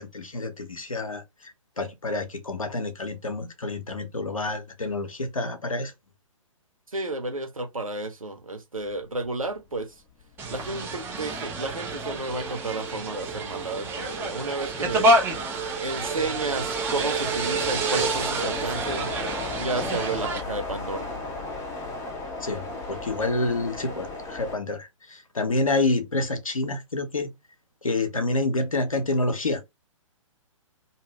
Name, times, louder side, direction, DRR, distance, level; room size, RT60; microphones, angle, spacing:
voice 1, 0.0-5.9 22.4-27.3 27.8-29.6, left 2 dB, 85° left, 0.8 m, -28 dB
voice 2, 6.9-9.9 10.5-15.1 15.8-21.1, right 2 dB, 90° right, 0.8 m, -32 dB
sound 1, 9.6-9.8 10.2-24.6, left 2 dB, 15° left, 0.7 m, -38 dB
sound 2, 10.4-20.4, right 2 dB, 15° right, 0.9 m, -28 dB
2.8 x 2.5 x 3.1 m
figure-of-eight pair, 125°, 17 cm